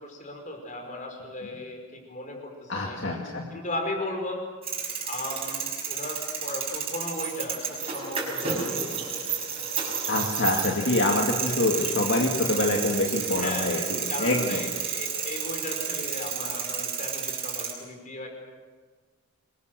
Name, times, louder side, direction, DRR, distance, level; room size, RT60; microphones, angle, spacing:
voice 1, 0.0-4.5 5.0-9.2 11.3-11.7 13.4-18.3, left 1 dB, 35° left, 3 dB, 4.9 m, -36 dB
voice 2, 2.7-3.5 10.1-14.6, left 2 dB, 55° left, 0 dB, 2.3 m, -26 dB
sound 1, 4.6-17.7, right 7 dB, 25° right, 5.8 m, -31 dB
27.5 x 23.0 x 6.8 m, 1.5 s
head